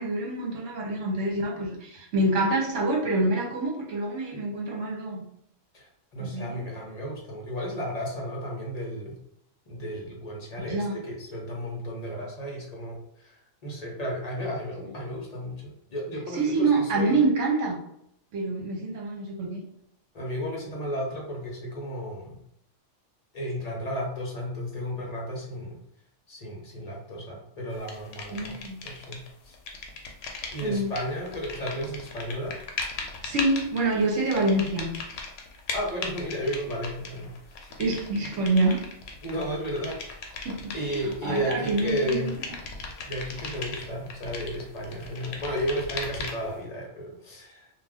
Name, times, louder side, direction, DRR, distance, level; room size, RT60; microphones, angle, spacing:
voice 1, 0.0-5.2 6.2-6.7 10.7-11.0 16.3-17.8 18.3-19.6 28.3-28.8 30.6-30.9 33.2-34.9 37.8-38.8 40.4-42.3, right 2 dB, 70° right, 0 dB, 1.1 m, -26 dB
voice 2, 5.7-9.2 9.7-13.4 13.6-17.2 20.1-22.4 23.3-25.8 26.3-29.2 29.4-29.6 30.5-32.6 35.7-37.3 37.6-37.7 39.2-40.4 40.7-42.3 43.1-47.7, equal, 40° left, -2 dB, 0.7 m, -33 dB
sound 1, 27.9-29.3 29.5-46.6, left 4 dB, 70° left, 0.9 m, -38 dB
2.4 x 2.4 x 3.4 m, 0.72 s
omnidirectional pair, 1.3 m